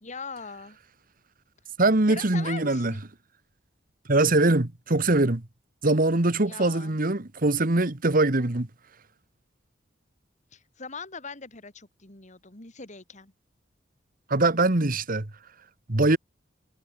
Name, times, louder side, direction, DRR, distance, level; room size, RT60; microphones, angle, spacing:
voice 1, 0.0-0.8 2.1-3.0 6.4-7.0 10.5-13.3, left 4 dB, 40° left, 2.9 m, -41 dB
voice 2, 1.8-2.9 4.1-5.4 5.8-8.7 14.3-15.3 15.9-16.2, right 2 dB, 50° right, 1.5 m, -22 dB
head